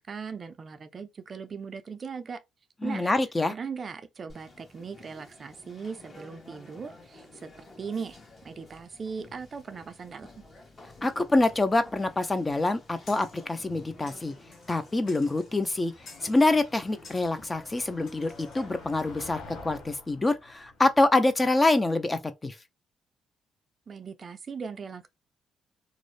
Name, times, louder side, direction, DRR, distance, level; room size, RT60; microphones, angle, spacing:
voice 1, 0.0-2.4 2.8-3.1 3.5-7.5 7.8-8.2 8.4-10.3 23.9-25.1, right 5 dB, 45° right, 0.4 m, -39 dB
voice 2, 2.8-3.5 11.0-14.3 14.7-15.9 16.2-22.5, left 2 dB, 20° left, 0.4 m, -25 dB
Conversation, 4.3-19.1, left 2 dB, 40° left, 1.0 m, -52 dB
Motor vehicle (road), 11.8-21.9, left 3 dB, 90° left, 0.9 m, -51 dB
sound 1, 13.1-13.4 14.1-14.8 15.1-15.5 16.1-16.5 17.0-17.3 18.1-18.7, left 3 dB, 70° left, 1.3 m, -51 dB
2.5 x 2.0 x 3.1 m
cardioid pair, 90°, 0 cm